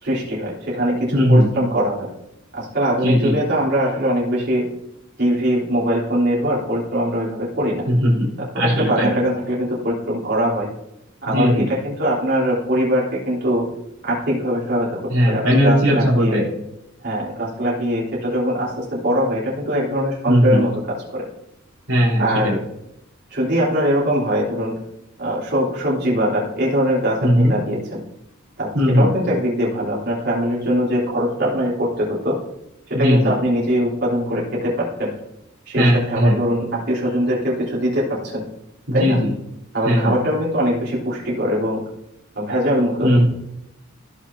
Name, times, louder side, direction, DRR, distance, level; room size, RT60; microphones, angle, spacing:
voice 1, 0.0-2.1 2.5-4.7 5.2-7.9 8.5-10.7 11.2-13.7 14.0-14.9 15.3-16.4 17.0-21.3 22.2-22.6 23.3-24.7 25.2-28.0 28.6-32.4 32.9-35.1 35.7-38.4 38.9-39.2 39.7-41.8 42.4-43.2, equal, 55° right, -6 dB, 3.6 m, -22 dB
voice 2, 1.1-1.5 3.0-3.3 7.9-8.3 8.5-9.1 11.3-11.6 15.1-16.5 20.3-20.6 21.9-22.5 27.2-27.5 28.7-29.1 33.0-33.3 35.7-36.4 38.9-39.3 39.8-40.1 43.0-43.3, equal, 75° right, -5 dB, 3.3 m, -17 dB
16.0 x 6.0 x 2.8 m, 0.85 s
head